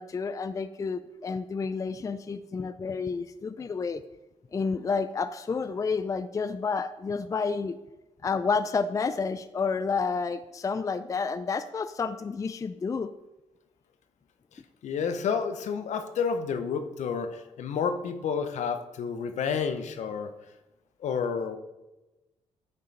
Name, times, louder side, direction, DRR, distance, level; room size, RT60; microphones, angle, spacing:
voice 1, 0.0-4.0 4.5-7.8 8.2-13.1, left 5 dB, 25° left, 11 dB, 0.4 m, -30 dB
voice 2, 14.8-20.3 21.0-21.6, left 6 dB, 70° left, 8 dB, 0.8 m, -30 dB
9.4 x 5.4 x 4.1 m, 1.0 s
cardioid pair, 85°, 13 cm